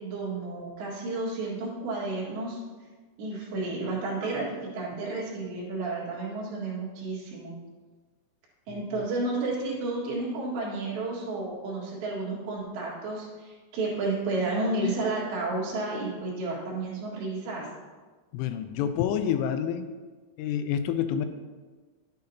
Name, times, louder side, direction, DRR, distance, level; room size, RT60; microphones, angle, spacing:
voice 1, 0.0-2.6 3.2-7.5 8.7-17.7, right 2 dB, 70° right, -5 dB, 3.9 m, -31 dB
voice 2, 18.3-19.9 20.4-21.3, left 9 dB, 90° left, 9 dB, 3.2 m, -28 dB
12.0 x 8.6 x 2.8 m, 1.4 s
omnidirectional pair, 5.6 m